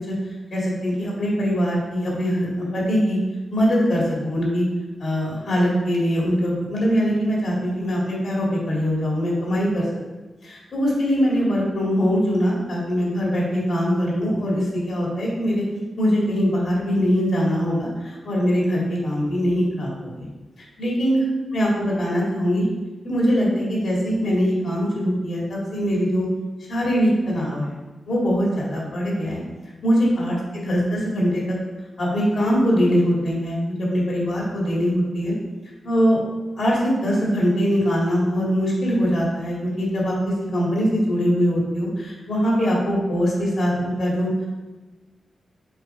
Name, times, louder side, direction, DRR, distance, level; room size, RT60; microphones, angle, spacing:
voice 1, 0.5-3.2 3.5-4.7 5.0-9.8 10.5-15.6 16.0-20.3 20.8-21.2 21.5-22.6 23.0-26.3 26.7-27.8 28.1-29.4 29.8-31.6 32.0-35.3 35.8-36.2 36.6-44.3, equal, 65° left, -4 dB, 2.3 m, -22 dB
6.9 x 3.9 x 4.8 m, 1.2 s
wide cardioid pair, 120°, 0 cm